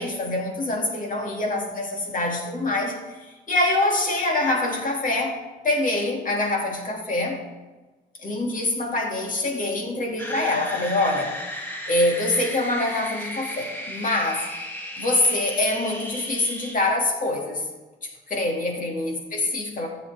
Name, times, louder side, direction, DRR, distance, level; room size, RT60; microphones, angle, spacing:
voice 1, 0.0-3.0 3.5-5.4 5.6-7.4 8.2-11.3 11.9-14.5 15.0-17.7 18.3-19.9, left 2 dB, 40° left, 1 dB, 2.4 m, -25 dB
sound 1, 10.2-16.7, equal, 10° left, 2.1 m, -35 dB
14.5 x 7.2 x 3.5 m, 1.2 s
cardioid pair, 90°, 20 cm